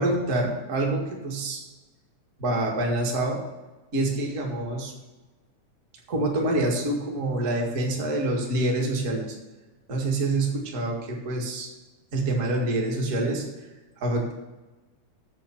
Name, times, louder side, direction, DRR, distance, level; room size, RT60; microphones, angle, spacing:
voice 1, 0.0-1.6 2.4-3.4 3.9-4.9 6.1-9.3 9.9-11.7 12.1-13.4 14.0-14.3, right 2 dB, 30° right, -1 dB, 1.6 m, -26 dB
7.6 x 7.1 x 7.1 m, 1.1 s
omnidirectional pair, 3.6 m